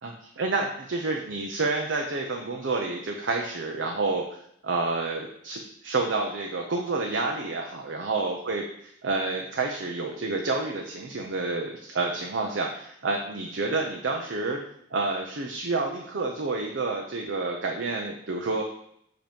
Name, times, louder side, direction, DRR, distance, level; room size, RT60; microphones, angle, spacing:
voice 1, 0.0-4.2 4.6-14.6 14.9-18.6, right 3 dB, 75° right, 1 dB, 0.7 m, -29 dB
7.7 x 3.0 x 5.1 m, 0.70 s
head